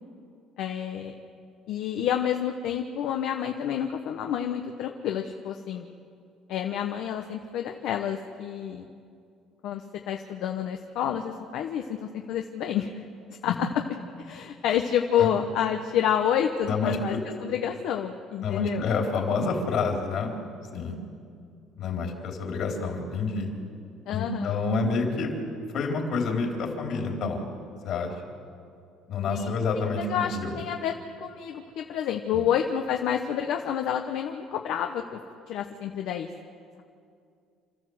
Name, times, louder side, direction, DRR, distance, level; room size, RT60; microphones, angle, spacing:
voice 1, 0.6-1.1 1.7-5.9 6.5-8.9 9.6-13.1 13.4-13.7 14.2-17.1 17.4-18.9 24.1-24.6 29.3-29.5 30.0-30.9 31.2-35.2 35.5-36.3, left 9 dB, 70° left, 4 dB, 1.1 m, -29 dB
voice 2, 16.7-17.2 18.4-20.3 20.7-21.0 21.8-23.5 24.1-25.3 25.7-27.4 27.8-28.1 29.1-30.6, left 4 dB, 55° left, 1 dB, 3.6 m, -28 dB
28.0 x 13.5 x 7.8 m, 2.4 s
cardioid pair, 145°, 0 cm